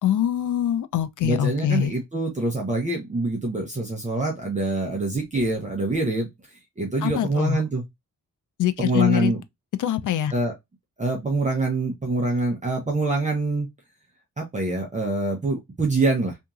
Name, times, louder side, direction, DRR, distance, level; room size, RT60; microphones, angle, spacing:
voice 1, 0.0-1.9 7.0-7.6 8.6-9.3 9.8-10.3, left 10 dB, 65° left, 0.4 m, -23 dB
voice 2, 1.2-7.8 8.8-9.4 10.3-10.5 11.0-13.7 14.4-16.4, right 2 dB, 20° right, 0.6 m, -25 dB
2.8 x 2.6 x 2.3 m
wide cardioid pair, 150°, 34 cm